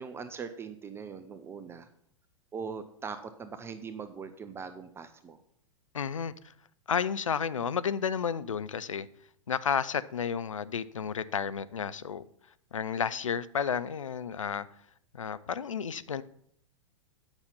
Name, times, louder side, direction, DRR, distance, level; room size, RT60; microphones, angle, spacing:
voice 1, 0.0-1.9 2.5-5.4, right 6 dB, 15° right, 10 dB, 0.4 m, -41 dB
voice 2, 5.9-6.5 6.9-9.1 9.5-12.3 12.7-14.7 15.1-16.2, left 7 dB, 80° left, 15 dB, 0.4 m, -32 dB
8.8 x 5.7 x 5.4 m, 0.69 s
figure-of-eight pair, 100°, 17 cm